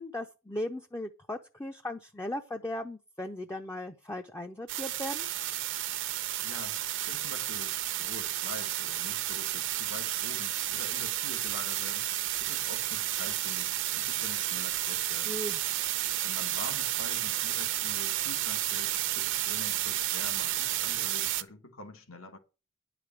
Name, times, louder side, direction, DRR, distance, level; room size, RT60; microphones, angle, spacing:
voice 1, 0.0-5.3 15.2-15.6, left 1 dB, 15° left, 0.6 m, -37 dB
sound 1, 4.7-21.4, right 14 dB, 60° right, 0.8 m, -32 dB
voice 2, 6.4-6.8 7.1-12.1 12.4-15.4 16.2-22.4, left 2 dB, 70° left, 1.7 m, -46 dB
10.0 x 5.1 x 7.4 m
head